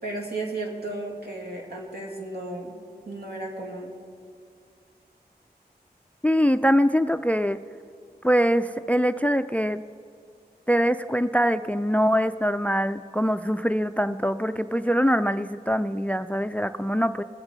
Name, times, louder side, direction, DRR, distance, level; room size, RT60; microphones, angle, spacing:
voice 1, 0.0-2.8 3.0-3.9, right 2 dB, 70° right, -1 dB, 2.2 m, -34 dB
voice 2, 6.2-7.6 8.2-9.8 10.7-17.2, equal, 10° left, 12 dB, 0.3 m, -23 dB
19.0 x 7.9 x 3.9 m, 2.2 s
wide cardioid pair, 45°, 17 cm